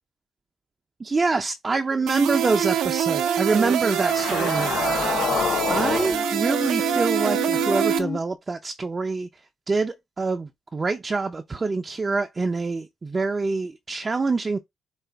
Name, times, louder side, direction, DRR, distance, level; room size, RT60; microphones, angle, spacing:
voice 1, 1.0-5.3 5.7-14.6, right 3 dB, 30° right, 0.5 m, -26 dB
sound 1, 2.1-8.0, right 9 dB, 85° right, 0.6 m, -25 dB
sound 2, 3.8-8.2, left 7 dB, 65° left, 0.7 m, -28 dB
4.7 x 2.4 x 3.4 m
cardioid pair, 90°, 0 cm